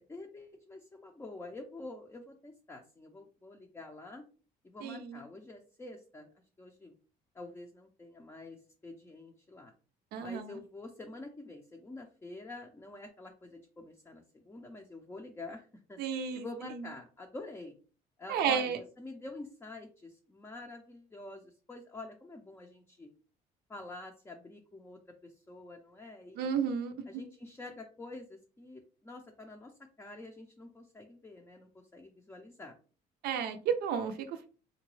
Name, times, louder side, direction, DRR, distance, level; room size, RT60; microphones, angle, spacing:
voice 1, 0.0-4.2 4.6-6.3 6.6-6.9 7.3-9.7 10.2-16.0 16.3-17.7 18.2-23.1 23.7-26.5 27.1-32.7, left 2 dB, 15° left, 2 dB, 0.5 m, -47 dB
voice 2, 4.8-5.2 10.1-10.6 16.0-16.5 18.3-18.8 26.4-26.9 33.2-34.5, right 7 dB, 70° right, 6 dB, 0.4 m, -32 dB
3.8 x 2.2 x 3.0 m, 0.37 s
cardioid pair, 110°, 17 cm